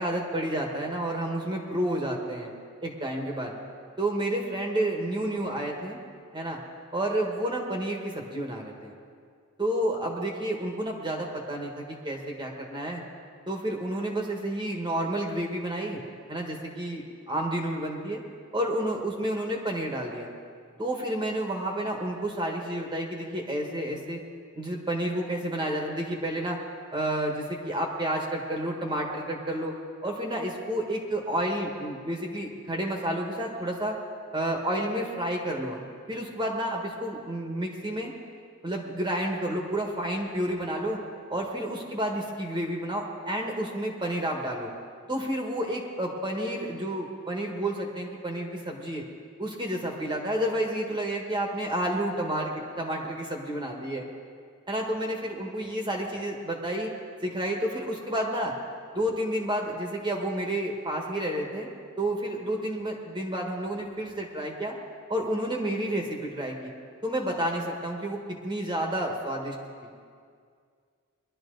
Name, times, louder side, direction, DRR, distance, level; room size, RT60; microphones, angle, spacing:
voice 1, 0.0-2.5 2.8-3.5 4.0-6.0 6.3-6.6 6.9-8.9 9.6-13.0 13.5-16.0 16.3-18.2 18.5-20.3 20.8-24.2 24.5-26.6 26.9-29.7 30.0-34.0 34.3-35.8 36.1-38.1 38.6-41.0 41.3-44.7 45.1-49.0 49.4-54.0 54.7-56.9 57.2-58.5 58.9-61.7 62.0-64.7 65.1-66.7 67.0-69.5 69.8-69.9, right 1 dB, 20° right, 0 dB, 1.4 m, -30 dB
21.5 x 12.0 x 3.9 m, 2.1 s
head